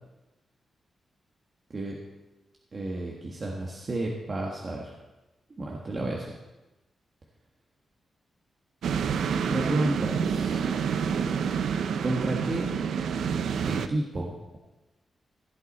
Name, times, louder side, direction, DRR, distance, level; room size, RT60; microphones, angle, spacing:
voice 1, 2.7-4.9 5.6-6.3 9.5-10.6 12.0-12.7 13.7-14.6, right 2 dB, 40° right, -2 dB, 1.6 m, -31 dB
sound 1, 8.8-13.9, right 7 dB, 90° right, 0.5 m, -28 dB
16.0 x 8.2 x 4.3 m, 1.1 s
cardioid pair, 95°, 0 cm